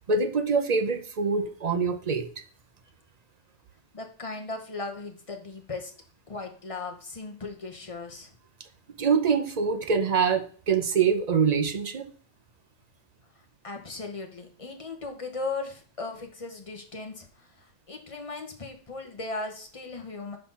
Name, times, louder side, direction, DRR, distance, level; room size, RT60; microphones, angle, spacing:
voice 1, 0.1-2.3 9.0-12.1, right 5 dB, 40° right, 7 dB, 0.7 m, -24 dB
voice 2, 3.9-5.9 6.3-8.3 13.6-20.4, left 3 dB, 30° left, 4 dB, 1.2 m, -37 dB
5.5 x 4.3 x 5.6 m, 0.42 s
omnidirectional pair, 1.2 m